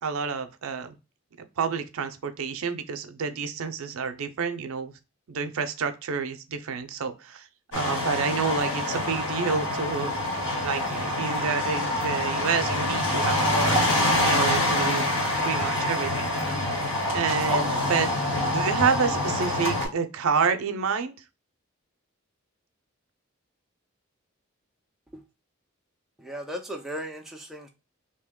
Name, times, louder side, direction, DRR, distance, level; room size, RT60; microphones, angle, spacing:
voice 1, 0.0-0.9 1.6-4.9 5.3-7.5 7.7-10.1 10.6-13.8 14.2-15.1 15.4-16.3 17.1-18.1 18.4-21.1, right 6 dB, 75° right, 0.5 m, -28 dB
sound 1, 7.7-19.9, left 1 dB, 60° left, 1.8 m, -26 dB
voice 2, 26.2-27.7, equal, ahead, 0.4 m, -36 dB
2.9 x 2.7 x 3.5 m
head